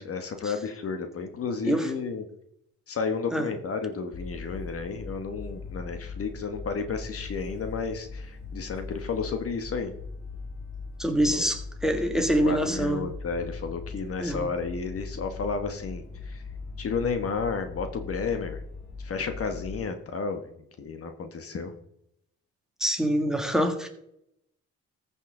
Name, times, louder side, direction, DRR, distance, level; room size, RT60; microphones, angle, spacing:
voice 1, 0.0-2.2 2.9-9.9 11.3-11.5 12.1-16.4 16.8-18.6 19.0-20.5 20.8-21.7, left 5 dB, 50° left, 7 dB, 1.2 m, -32 dB
sound 1, 4.1-19.8, left 4 dB, 80° left, 1.9 m, -40 dB
voice 2, 11.0-13.1 14.2-14.5 22.8-23.9, equal, ahead, 5 dB, 1.7 m, -25 dB
14.5 x 5.7 x 3.7 m, 0.75 s
cardioid pair, 90°, 30 cm